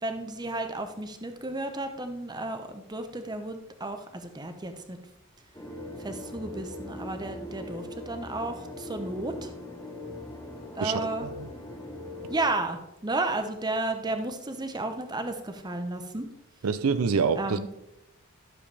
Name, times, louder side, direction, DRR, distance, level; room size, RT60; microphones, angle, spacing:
voice 1, 0.0-5.0 6.0-9.5 10.7-11.3 12.3-16.3 17.4-17.7, right 2 dB, 20° right, 0.8 m, -33 dB
sound 1, 5.5-12.4, left 1 dB, 15° left, 1.0 m, -41 dB
voice 2, 10.8-11.3 16.6-17.8, right 5 dB, 75° right, 0.5 m, -26 dB
12.5 x 7.0 x 3.4 m
head